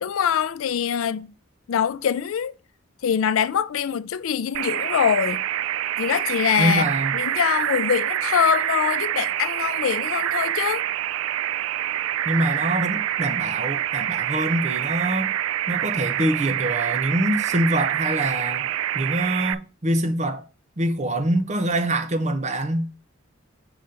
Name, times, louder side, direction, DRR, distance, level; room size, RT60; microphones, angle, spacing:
voice 1, 0.0-1.3 1.7-2.5 3.0-5.4 6.0-6.9 7.1-10.9, left 8 dB, 80° left, 0.4 m, -23 dB
sound 1, 4.5-19.5, right 12 dB, 80° right, 0.3 m, -26 dB
voice 2, 6.6-7.1 12.2-15.3 15.7-18.7 18.9-20.4 20.8-22.9, right 1 dB, 35° right, 0.7 m, -24 dB
5.0 x 3.9 x 5.6 m
head